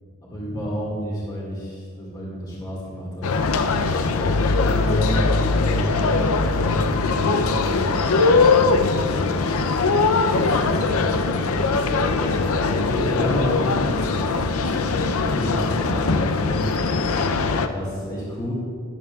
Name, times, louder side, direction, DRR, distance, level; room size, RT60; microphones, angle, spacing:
voice 1, 0.2-3.3 4.0-9.5 9.9-17.0 17.7-18.5, equal, 20° left, -5 dB, 2.0 m, -31 dB
sound 1, 3.2-17.7, left 4 dB, 75° left, 0.5 m, -21 dB
13.0 x 10.5 x 2.4 m, 2.2 s
head